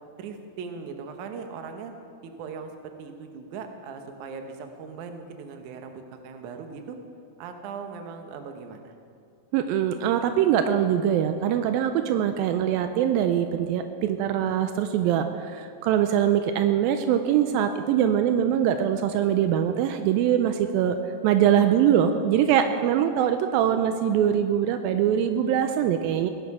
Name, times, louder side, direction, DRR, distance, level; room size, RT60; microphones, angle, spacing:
voice 1, 0.2-1.9 2.2-7.0 7.4-8.9, right 5 dB, 65° right, 5 dB, 2.2 m, -39 dB
voice 2, 9.5-21.0 21.2-26.3, right 9 dB, 85° right, 8 dB, 2.3 m, -23 dB
18.0 x 11.5 x 4.9 m, 2.3 s
omnidirectional pair, 4.2 m